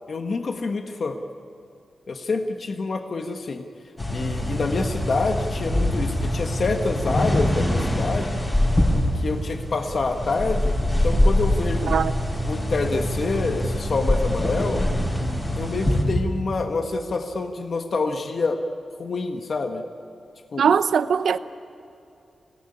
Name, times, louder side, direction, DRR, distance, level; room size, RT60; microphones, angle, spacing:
voice 1, 0.1-1.2 2.1-3.6 4.1-8.4 9.1-12.0 12.5-14.8 15.6-18.6 19.0-19.8 20.5-20.7, left 3 dB, 50° left, 1.5 m, -27 dB
sound 1, 4.0-16.0, left 1 dB, 20° left, 6.7 m, -24 dB
voice 2, 20.6-21.4, right 7 dB, 80° right, 0.8 m, -20 dB
27.5 x 18.0 x 9.9 m
wide cardioid pair, 130°, 0 cm